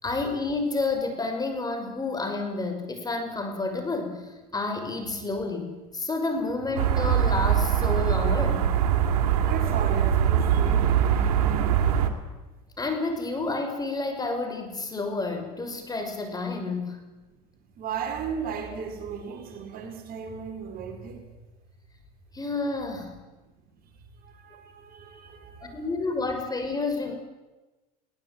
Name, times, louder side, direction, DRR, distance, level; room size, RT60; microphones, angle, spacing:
voice 1, 0.0-8.7 12.8-17.0 22.3-23.2 25.6-27.1, left 3 dB, 20° left, 5 dB, 5.8 m, -30 dB
sound 1, 6.8-12.1, right 9 dB, 85° right, 2.6 m, -22 dB
voice 2, 9.4-10.9 17.8-21.3 23.6-23.7 24.2-25.9, right 6 dB, 50° right, 5 dB, 4.2 m, -36 dB
21.0 x 18.0 x 9.3 m, 1.1 s
supercardioid pair, 100°, 19 cm